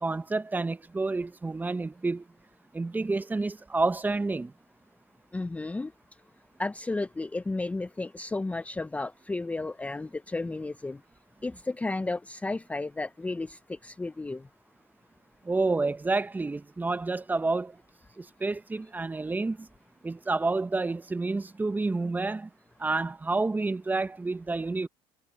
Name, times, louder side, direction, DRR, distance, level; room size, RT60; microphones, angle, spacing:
voice 1, 0.0-2.2 2.7-4.5 15.4-17.8 18.2-19.7 20.0-22.5 22.8-24.9, right 3 dB, 15° right, 1.0 m, -29 dB
voice 2, 5.3-5.9 6.6-11.0 11.4-13.6 13.8-14.4, left 2 dB, 10° left, 0.6 m, -33 dB
supercardioid pair, 95°, 12 cm